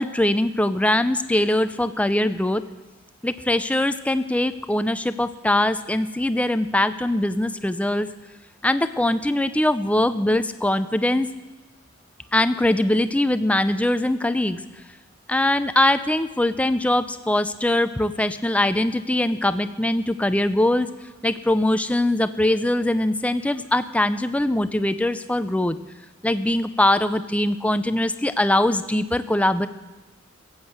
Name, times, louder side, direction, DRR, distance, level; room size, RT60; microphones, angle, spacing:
voice 1, 0.0-2.6 3.2-8.1 8.6-11.3 12.3-14.6 15.3-20.9 21.2-25.8 26.2-29.7, left 1 dB, 5° left, 12 dB, 0.4 m, -22 dB
15.5 x 8.1 x 7.9 m, 1.2 s
head